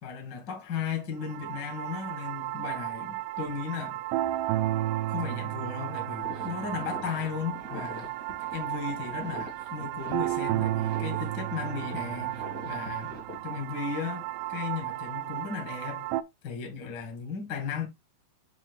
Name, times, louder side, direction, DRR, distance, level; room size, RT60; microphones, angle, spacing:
voice 1, 0.0-4.0 5.1-13.1 13.4-16.0 16.4-17.9, left 6 dB, 85° left, 0.9 m, -36 dB
sound 1, 1.2-16.2, right 15 dB, 85° right, 2.6 m, -33 dB
sound 2, 6.2-13.3, equal, 65° right, 0.8 m, -44 dB
7.8 x 2.8 x 6.1 m
omnidirectional pair, 5.4 m